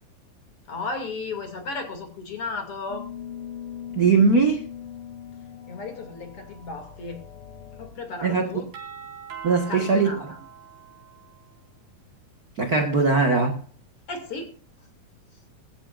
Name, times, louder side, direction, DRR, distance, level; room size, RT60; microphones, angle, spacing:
voice 1, 0.7-3.1 5.7-7.2 7.8-8.7 9.5-10.4 14.1-14.6, left 3 dB, 40° left, 6 dB, 3.1 m, -34 dB
sound 1, 2.9-7.9, left 9 dB, 75° left, 4.6 m, -40 dB
voice 2, 4.0-4.6 8.2-8.5 9.4-10.1 12.6-13.6, right 4 dB, 50° right, 5 dB, 1.1 m, -20 dB
Doorbell, 8.7-11.6, right 8 dB, 75° right, 5.9 m, -42 dB
19.0 x 15.5 x 2.5 m, 0.36 s
omnidirectional pair, 4.2 m